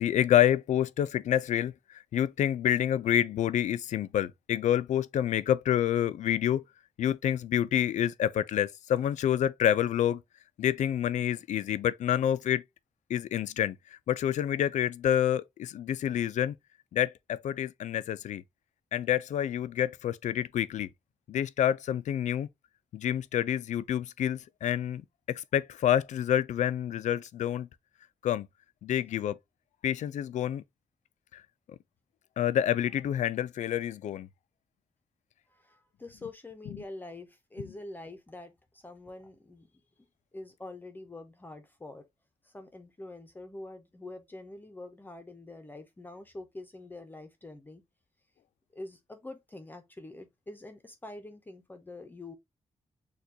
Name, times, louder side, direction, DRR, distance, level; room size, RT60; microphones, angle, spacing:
voice 1, 0.0-6.6 7.0-10.2 10.6-12.6 13.1-16.6 16.9-18.4 18.9-20.9 21.3-22.5 22.9-27.7 28.2-28.5 28.8-29.4 29.8-30.6 31.3-31.4 31.7-31.8 32.4-34.3, left 10 dB, 80° left, 0.4 m, -28 dB
voice 2, 35.5-39.8 40.3-42.1 42.4-47.8 48.7-52.3, left 2 dB, 15° left, 0.6 m, -45 dB
6.5 x 2.3 x 2.7 m
wide cardioid pair, 155°, 12 cm